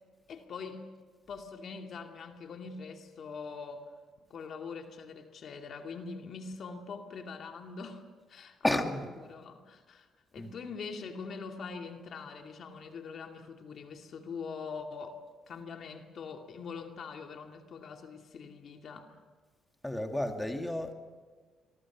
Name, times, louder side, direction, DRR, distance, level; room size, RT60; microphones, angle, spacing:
voice 1, 0.3-0.8 1.3-3.9 4.3-8.0 8.3-8.8 9.2-10.1 10.3-19.2, left 5 dB, 60° left, 4 dB, 2.4 m, -43 dB
voice 2, 8.6-9.1 10.4-10.5 19.8-20.9, left 1 dB, 10° left, 4 dB, 2.4 m, -31 dB
26.0 x 22.5 x 6.2 m, 1.4 s
cardioid pair, 90°, 0 cm